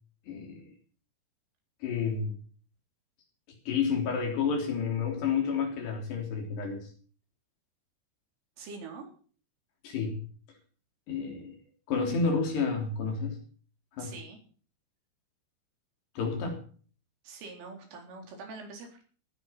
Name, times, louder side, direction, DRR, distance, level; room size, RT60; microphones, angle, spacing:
voice 1, 0.3-0.7 1.8-2.4 3.7-6.9 9.8-10.2 11.1-11.6 11.9-13.4 14.0-14.1 16.2-16.6, left 5 dB, 60° left, 3 dB, 5.3 m, -30 dB
voice 2, 8.6-9.1 14.0-14.4 17.2-19.0, right 4 dB, 80° right, 2 dB, 6.5 m, -44 dB
18.5 x 10.5 x 5.7 m, 0.43 s
omnidirectional pair, 5.6 m